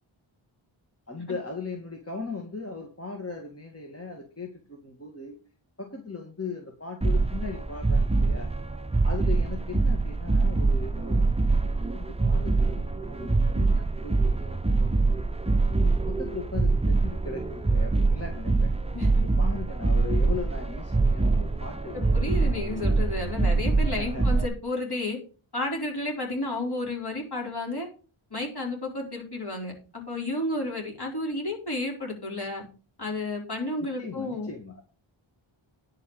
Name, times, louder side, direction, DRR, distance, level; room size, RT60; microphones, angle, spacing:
voice 1, 1.1-5.4 5.8-8.5 9.0-11.3 11.8-14.6 15.7-18.7 19.4-22.4 24.0-24.3 34.0-34.8, left 4 dB, 30° left, 2 dB, 2.0 m, -38 dB
sound 1, 7.0-24.5, right 3 dB, 10° right, 0.7 m, -24 dB
voice 2, 21.9-25.2 25.5-27.9 28.3-32.6 33.0-34.5, left 2 dB, 50° left, 0 dB, 4.5 m, -32 dB
10.0 x 5.9 x 6.5 m, 0.36 s
wide cardioid pair, 70°, 50 cm